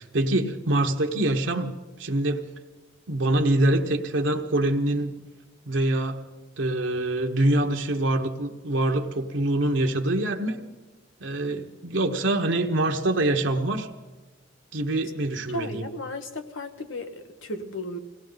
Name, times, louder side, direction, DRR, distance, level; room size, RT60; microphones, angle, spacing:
voice 1, 0.0-1.7 2.0-2.5 3.1-5.2 5.7-6.3 6.6-10.6 11.2-13.9 14.7-15.8, right 1 dB, 65° right, 3 dB, 1.0 m, -25 dB
voice 2, 15.5-18.0, left 1 dB, 80° left, 7 dB, 1.3 m, -35 dB
21.5 x 17.0 x 3.9 m, 1.2 s
head